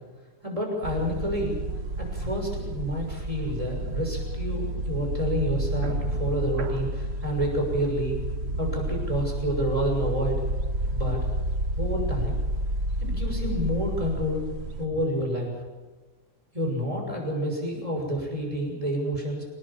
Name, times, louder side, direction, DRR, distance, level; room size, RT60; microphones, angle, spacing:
voice 1, 0.4-1.6 2.0-8.2 8.6-10.4 10.9-11.2 11.8-12.4 13.0-14.4 14.8-15.5 16.5-19.4, equal, 25° right, 1 dB, 6.4 m, -29 dB
sound 1, 0.8-14.9, right 1 dB, 50° right, 1.5 m, -30 dB
25.0 x 19.5 x 7.4 m, 1.3 s
omnidirectional pair, 1.5 m